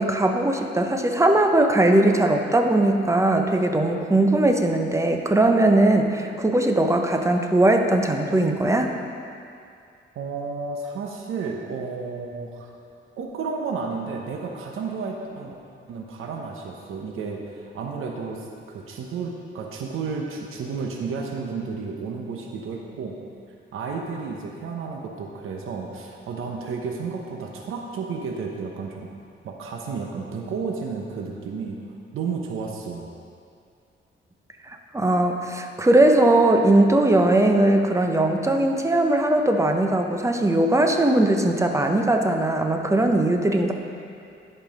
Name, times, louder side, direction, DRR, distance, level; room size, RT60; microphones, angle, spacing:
voice 1, 0.0-8.9 34.7-43.7, right 1 dB, 15° right, 4 dB, 0.7 m, -20 dB
voice 2, 10.1-12.7 13.2-15.6 15.9-23.2 23.7-29.1 29.4-31.8 32.1-33.1, right 4 dB, 90° right, 1 dB, 0.9 m, -32 dB
11.0 x 5.5 x 5.2 m, 2.4 s
cardioid pair, 115°, 21 cm